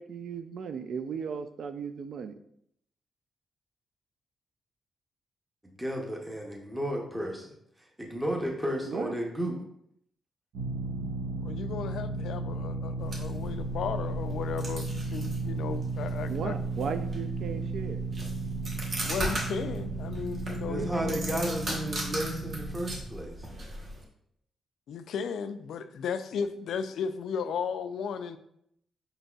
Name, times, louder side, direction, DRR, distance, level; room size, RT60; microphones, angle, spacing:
voice 1, 0.0-2.3 8.8-9.2 16.3-18.0 20.7-21.1, right 6 dB, 65° right, 0.3 m, -36 dB
voice 2, 5.6-7.5 8.0-9.6 20.7-23.5, equal, 5° right, 0.6 m, -33 dB
sound 1, 10.5-23.0, right 3 dB, 85° right, 1.0 m, -34 dB
voice 3, 11.4-16.5 19.0-20.9 24.9-28.4, left 6 dB, 80° left, 0.3 m, -35 dB
sound 2, 13.0-24.0, right 1 dB, 45° right, 0.9 m, -38 dB
5.2 x 3.9 x 2.3 m
wide cardioid pair, 140°, 0 cm